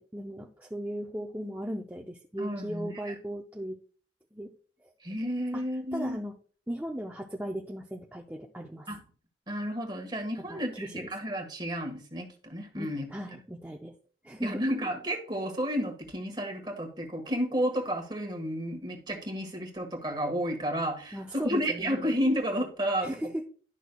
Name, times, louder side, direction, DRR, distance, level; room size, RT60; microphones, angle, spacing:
voice 1, 0.0-3.8 4.3-4.5 4.8-4.9 5.5-5.6 5.9-6.3 6.7-8.9 10.5-11.1 12.8-14.0 14.2-14.6 21.1-22.2 23.0-23.4, equal, 10° right, 0 dB, 0.6 m, -37 dB
voice 2, 2.4-3.1 5.0-6.2 8.9-9.0 9.5-13.0 14.4-23.2, equal, 25° right, 4 dB, 1.5 m, -31 dB
11.0 x 6.1 x 2.3 m, 0.42 s
head